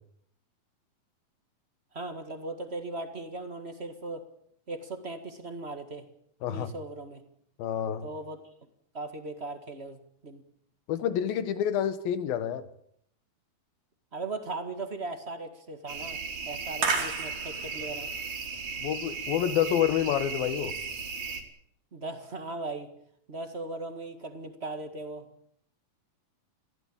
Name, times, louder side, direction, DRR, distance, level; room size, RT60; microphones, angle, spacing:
voice 1, 1.9-4.2 4.7-6.1 6.5-7.2 8.0-8.4 8.9-10.4 14.1-18.1 21.9-22.9 23.3-25.3, right 2 dB, 35° right, 8 dB, 1.0 m, -38 dB
voice 2, 6.4-6.7 7.6-8.1 10.9-12.7 18.8-20.7, left 10 dB, 80° left, 13 dB, 3.2 m, -28 dB
sound 1, 15.9-21.4, right 4 dB, 60° right, 4.4 m, -34 dB
22.0 x 16.0 x 8.9 m, 0.69 s
omnidirectional pair, 4.2 m